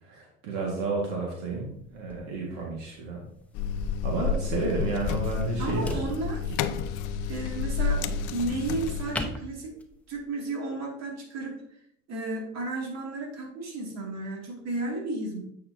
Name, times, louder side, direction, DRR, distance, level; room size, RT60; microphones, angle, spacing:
voice 1, 0.0-3.2 4.0-6.0, right 3 dB, 75° right, -1 dB, 1.8 m, -31 dB
sound 1, 1.5-10.2, left 1 dB, 5° left, 0.8 m, -43 dB
sound 2, 3.5-9.2, left 6 dB, 60° left, 0.6 m, -30 dB
voice 2, 5.6-6.6 7.3-8.1 8.3-9.7 10.1-11.6 12.1-15.4, right 2 dB, 50° right, 0 dB, 2.4 m, -33 dB
8.6 x 5.7 x 2.7 m, 0.70 s
supercardioid pair, 85°, 36 cm